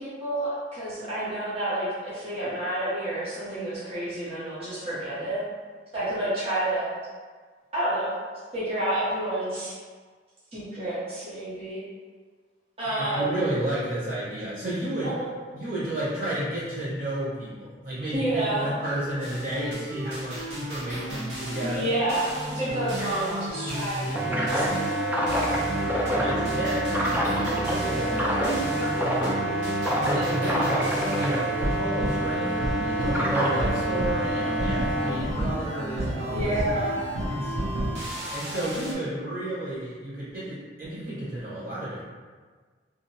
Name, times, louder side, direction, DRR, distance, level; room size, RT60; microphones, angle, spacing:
voice 1, 0.0-5.4 5.9-6.9 7.7-8.1 8.5-9.7 10.5-11.8 12.8-13.4 15.0-15.2 18.1-18.7 21.6-24.9 27.9-28.2 36.3-37.1, right 1 dB, 35° right, -11 dB, 0.8 m, -29 dB
voice 2, 12.9-15.1 15.5-22.0 26.1-29.0 30.0-36.9 37.3-37.6 38.3-42.0, right 1 dB, 55° right, -11 dB, 1.3 m, -32 dB
sound 1, 19.2-38.9, equal, 75° right, 0.7 m, -32 dB
sound 2, 24.1-35.1, right 1 dB, 10° right, 0.3 m, -27 dB
2.7 x 2.0 x 2.8 m, 1.5 s
head